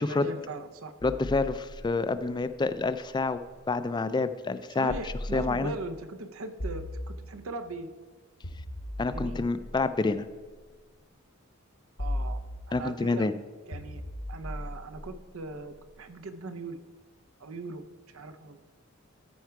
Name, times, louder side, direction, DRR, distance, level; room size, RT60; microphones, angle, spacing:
voice 1, 0.0-0.9 4.7-7.9 9.1-9.4 12.0-13.3 13.7-14.0 14.3-16.8 17.4-18.6, right 3 dB, 85° right, 10 dB, 0.7 m, -40 dB
sound 1, 1.0-3.8 4.9-5.9 6.6-7.7 8.4-10.7 12.0-13.1 13.7-15.9, left 1 dB, 70° left, 1.1 m, -39 dB
voice 2, 1.0-3.4 3.7-4.9 5.3-5.7 9.0-10.2 12.7-13.3, left 3 dB, 20° left, 12 dB, 0.3 m, -28 dB
14.0 x 4.7 x 4.6 m, 1.4 s
head